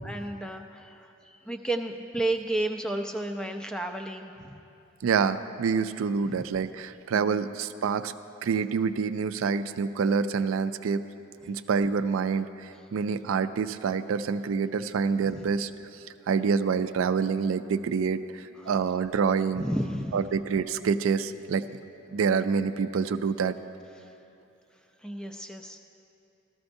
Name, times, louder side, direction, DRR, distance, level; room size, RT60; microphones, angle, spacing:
voice 1, 0.0-4.6 6.3-6.4 7.1-7.5 15.3-15.4 18.6-18.7 19.6-20.3 25.0-25.8, right 1 dB, 5° left, 4 dB, 0.4 m, -32 dB
voice 2, 5.0-8.1 8.4-11.0 11.5-15.7 16.3-19.7 20.1-21.7 22.1-23.6, right 5 dB, 80° right, 11 dB, 0.4 m, -27 dB
14.0 x 13.5 x 2.6 m, 2.7 s
head